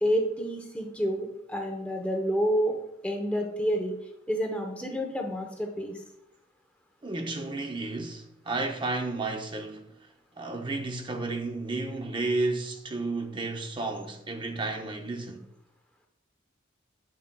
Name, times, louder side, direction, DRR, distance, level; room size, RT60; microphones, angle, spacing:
voice 1, 0.0-2.7 3.0-4.0 4.3-6.0, equal, 5° left, 0.8 m, -29 dB
voice 2, 7.0-10.0 10.4-15.5, right 2 dB, 25° right, 0.6 m, -32 dB
7.4 x 7.3 x 2.2 m
head